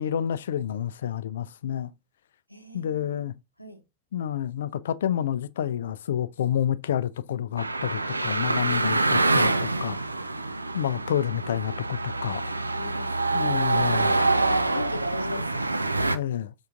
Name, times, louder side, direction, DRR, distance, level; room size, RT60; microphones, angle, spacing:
voice 1, 0.0-1.9 2.7-3.3 4.1-10.0 10.7-12.6 13.3-14.2 16.1-16.5, left 10 dB, 60° left, 0.3 m, -29 dB
voice 2, 2.5-3.0 3.6-3.8 8.8-9.0 12.8-14.0 14.4-15.6, left 1 dB, 90° left, 0.7 m, -38 dB
sound 1, 7.6-16.2, right 2 dB, 80° right, 0.3 m, -26 dB
5.5 x 3.5 x 2.5 m
figure-of-eight pair, 90°, 0 cm